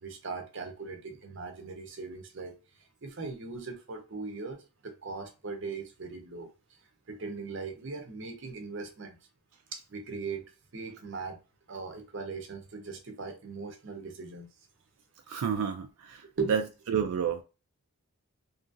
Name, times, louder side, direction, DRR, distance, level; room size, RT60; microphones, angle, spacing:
voice 1, 0.0-2.6 3.0-6.5 7.1-9.2 9.7-11.4 11.7-14.5 16.3-16.6, right 4 dB, 55° right, 0.6 m, -39 dB
voice 2, 15.3-16.6 16.9-17.4, right 7 dB, 85° right, 0.3 m, -30 dB
2.7 x 2.5 x 2.5 m
head